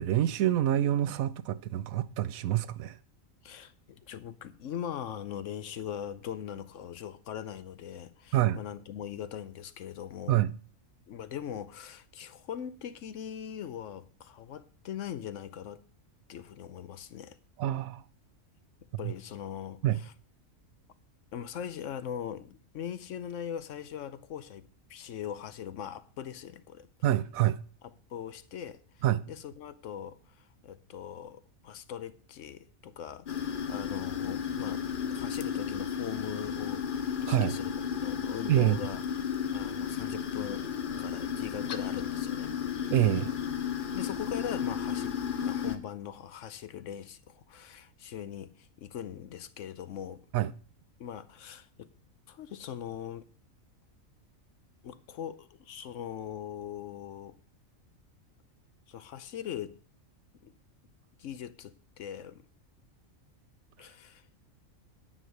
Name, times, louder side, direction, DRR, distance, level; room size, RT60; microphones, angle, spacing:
voice 1, 0.0-3.0 8.3-8.6 10.3-10.5 17.6-18.0 19.0-19.1 19.8-20.0 27.0-27.6 29.0-29.2 37.3-37.6 38.5-38.8 42.9-43.3 50.3-50.5, right 13 dB, 85° right, 1.0 m, -26 dB
voice 2, 3.4-10.4 11.1-15.8 16.3-17.4 19.0-20.1 21.3-26.9 28.1-34.8 35.1-37.7 38.0-39.0 39.5-40.7 41.0-42.6 43.7-50.3 51.0-51.9 52.3-53.3 54.8-57.4 58.9-59.8 60.4-60.5 61.2-62.4 63.8-64.2, left 9 dB, 70° left, 1.0 m, -41 dB
sound 1, 33.3-45.8, left 7 dB, 45° left, 0.8 m, -33 dB
9.7 x 5.6 x 6.6 m
omnidirectional pair, 1.4 m